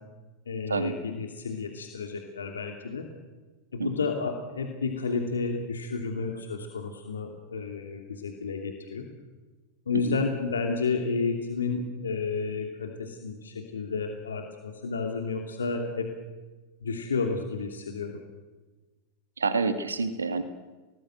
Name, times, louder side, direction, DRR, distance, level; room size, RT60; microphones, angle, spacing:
voice 1, 0.5-3.0 3.7-9.1 9.9-16.1 16.8-18.2, left 4 dB, 75° left, 3 dB, 2.8 m, -31 dB
voice 2, 19.4-20.4, right 4 dB, 75° right, 10 dB, 2.0 m, -28 dB
30.0 x 19.5 x 8.1 m, 1.3 s
figure-of-eight pair, 90°, 0 cm